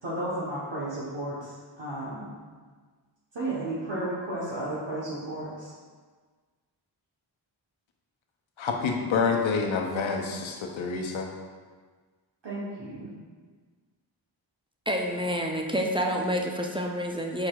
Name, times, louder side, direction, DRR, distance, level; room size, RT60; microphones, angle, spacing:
voice 1, 0.0-2.3 3.3-5.7 12.4-13.1, right 1 dB, 65° right, -9 dB, 1.1 m, -33 dB
voice 2, 8.6-11.3, left 5 dB, 75° left, 2 dB, 0.7 m, -27 dB
voice 3, 14.9-17.5, equal, 10° right, 1 dB, 0.4 m, -28 dB
4.8 x 4.4 x 2.3 m, 1.5 s
cardioid pair, 40°, 47 cm